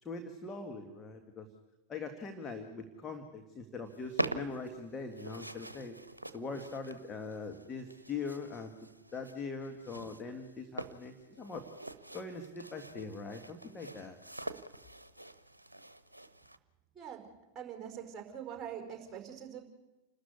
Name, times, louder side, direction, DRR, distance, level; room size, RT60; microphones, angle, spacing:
voice 1, 0.0-1.5 1.9-6.0 6.3-11.6 12.1-14.2, left 4 dB, 20° left, 5 dB, 2.0 m, -42 dB
sound 1, 3.8-16.6, right 1 dB, 85° right, 0.9 m, -44 dB
voice 2, 16.9-19.6, right 8 dB, 20° right, 3 dB, 5.1 m, -44 dB
28.5 x 13.0 x 9.7 m, 1.1 s
figure-of-eight pair, 90°, 0 cm